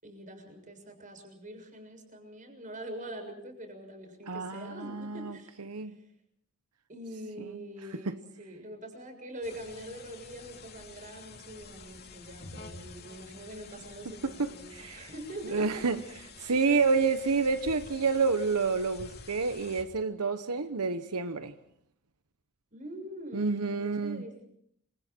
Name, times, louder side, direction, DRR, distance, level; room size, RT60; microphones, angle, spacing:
voice 1, 0.0-5.5 6.9-15.9 22.7-24.4, right 1 dB, 35° right, 6.9 m, -44 dB
voice 2, 4.3-6.0 7.4-7.6 7.9-8.2 14.2-15.1 15.4-16.0 16.4-21.5 23.3-24.2, right 4 dB, 90° right, 1.1 m, -29 dB
sound 1, 9.4-19.8, left 4 dB, 45° left, 2.7 m, -49 dB
28.0 x 26.0 x 4.5 m
head